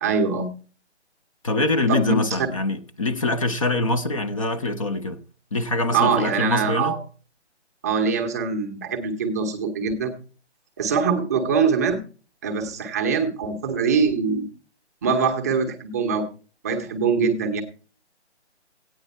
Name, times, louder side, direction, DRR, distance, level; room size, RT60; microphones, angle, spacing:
voice 1, 0.0-0.5 1.9-2.1 5.9-7.0 7.8-10.1 10.8-12.0 12.4-14.4 15.0-16.2 16.6-17.6, right 5 dB, 15° right, 0.8 m, -23 dB
voice 2, 1.4-5.2 5.5-7.0, left 2 dB, 30° left, 0.7 m, -24 dB
14.5 x 9.3 x 4.2 m
figure-of-eight pair, 150°, 34 cm